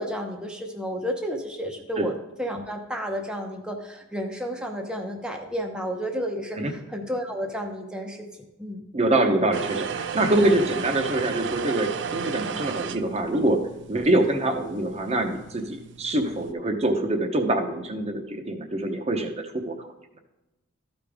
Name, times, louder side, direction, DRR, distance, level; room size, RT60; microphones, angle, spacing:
voice 1, 0.0-8.3 8.6-8.8, equal, 5° right, 1 dB, 0.8 m, -31 dB
voice 2, 8.9-13.6 13.9-19.9, right 1 dB, 30° right, 5 dB, 0.9 m, -25 dB
sound 1, 9.5-16.5, right 6 dB, 60° right, 0.4 m, -34 dB
13.5 x 5.1 x 3.6 m, 0.99 s
head